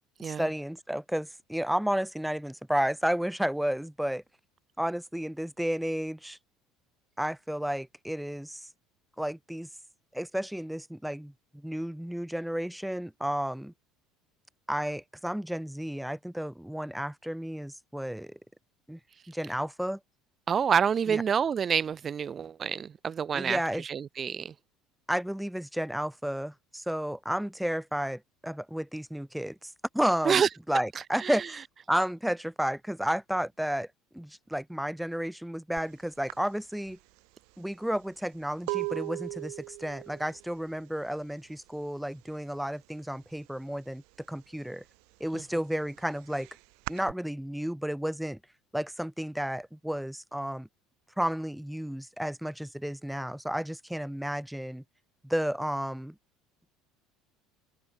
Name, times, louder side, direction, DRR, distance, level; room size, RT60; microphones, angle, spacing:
voice 1, 0.2-4.2 4.8-6.4 7.2-8.6 9.2-9.7 10.1-13.7 14.7-18.4 18.9-19.0 19.3-20.0 21.1-21.2 23.3-23.8 25.1-30.4 30.7-33.9 34.1-37.0 37.6-44.0 44.3-44.8 45.2-46.5 46.9-48.4 48.7-50.7 51.2-54.8 55.2-56.1, equal, 5° right, 1.1 m, -32 dB
voice 2, 20.5-24.5 30.2-30.5 31.2-31.5 45.3-45.4, right 7 dB, 35° right, 0.8 m, -28 dB
sound 1, 35.8-35.9 36.3-42.0 42.2-42.7 43.0-44.2 44.6-47.1, right 35 dB, 65° right, 1.8 m, -39 dB
open air
hypercardioid pair, 65°, 0 cm